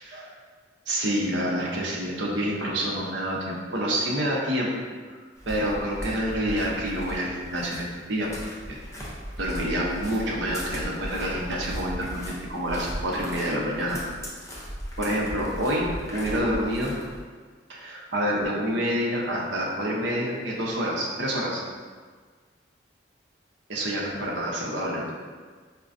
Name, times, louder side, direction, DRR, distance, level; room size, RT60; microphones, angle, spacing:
voice 1, 0.9-4.7 5.1-5.2 5.5-8.3 8.7-8.8 9.4-14.0 15.0-16.9 17.7-21.6 23.7-25.1, equal, 70° right, -3 dB, 0.7 m, -27 dB
sound 1, 5.4-17.2, equal, 15° left, 0.5 m, -37 dB
4.9 x 2.2 x 2.5 m, 1.6 s
head